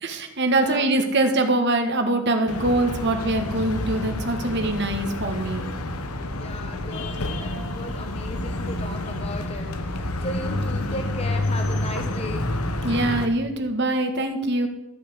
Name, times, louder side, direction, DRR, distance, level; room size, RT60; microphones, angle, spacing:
voice 1, 0.0-5.7 12.8-14.7, right 2 dB, 50° right, 5 dB, 1.6 m, -23 dB
voice 2, 0.5-1.0 6.3-12.5, left 1 dB, 30° left, 5 dB, 1.1 m, -36 dB
sound 1, 2.5-13.3, left 2 dB, 80° left, 1.2 m, -29 dB
14.0 x 5.9 x 8.3 m, 0.91 s
head